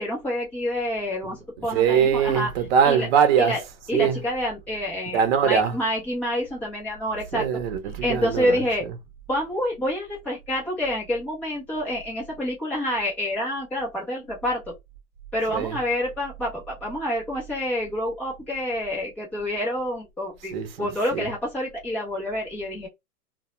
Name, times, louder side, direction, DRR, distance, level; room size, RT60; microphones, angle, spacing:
voice 1, 0.0-2.5 2.8-3.1 3.4-3.6 3.9-7.5 8.0-8.9 9.3-14.6 15.3-22.9, left 1 dB, 5° left, 0.4 m, -28 dB
voice 2, 1.7-3.6 3.9-4.2 5.1-5.8 7.3-8.9 15.5-15.8 20.5-20.9 21.1-21.3, right 7 dB, 40° right, 0.7 m, -22 dB
2.3 x 2.0 x 2.9 m
hypercardioid pair, 135°, 45 cm